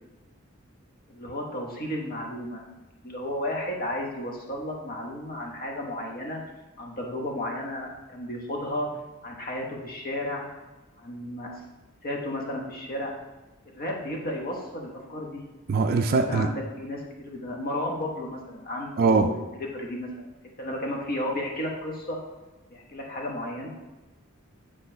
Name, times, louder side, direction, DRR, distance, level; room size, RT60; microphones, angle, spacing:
voice 1, 1.1-2.6 3.0-6.4 6.8-8.9 9.2-10.5 11.0-11.5 12.0-13.1 13.7-15.4 15.9-20.3 20.6-22.2 22.7-23.7, left 1 dB, 45° left, 0 dB, 1.1 m, -33 dB
voice 2, 15.7-16.5 19.0-19.3, right 4 dB, 45° right, 5 dB, 0.3 m, -21 dB
8.2 x 3.2 x 4.4 m, 1.1 s
head